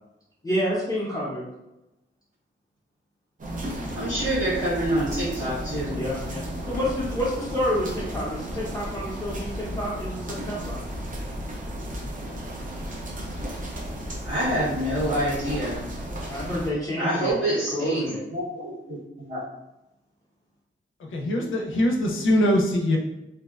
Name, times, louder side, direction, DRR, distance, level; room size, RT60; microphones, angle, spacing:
voice 1, 0.4-1.4 5.9-10.8 16.0-18.2, equal, 20° left, -7 dB, 0.6 m, -29 dB
sound 1, 3.4-16.7, equal, 40° right, 0.5 m, -34 dB
voice 2, 4.0-6.0 14.2-15.8 17.0-19.4, right 1 dB, 75° right, -15 dB, 1.4 m, -27 dB
voice 3, 21.0-23.0, left 1 dB, 90° left, 0 dB, 0.5 m, -22 dB
2.6 x 2.1 x 2.3 m, 0.93 s
wide cardioid pair, 110°, 20 cm